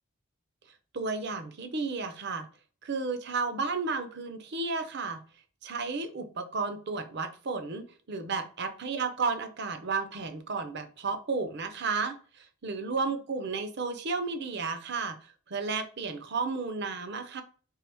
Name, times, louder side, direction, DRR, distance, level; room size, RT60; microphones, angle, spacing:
voice 1, 0.9-2.5 2.8-5.2 5.6-15.2 15.5-17.4, right 4 dB, 55° right, 9 dB, 0.7 m, -33 dB
4.6 x 3.3 x 3.4 m, 0.40 s
head